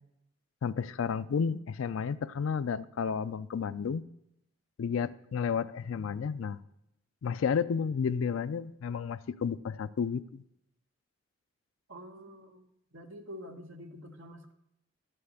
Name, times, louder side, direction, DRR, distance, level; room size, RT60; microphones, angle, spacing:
voice 1, 0.6-4.0 4.8-6.6 7.2-10.4, left 6 dB, 70° left, 16 dB, 0.4 m, -32 dB
voice 2, 11.9-12.6 12.9-14.5, equal, 65° right, 4 dB, 1.1 m, -47 dB
12.5 x 5.7 x 6.4 m, 0.81 s
head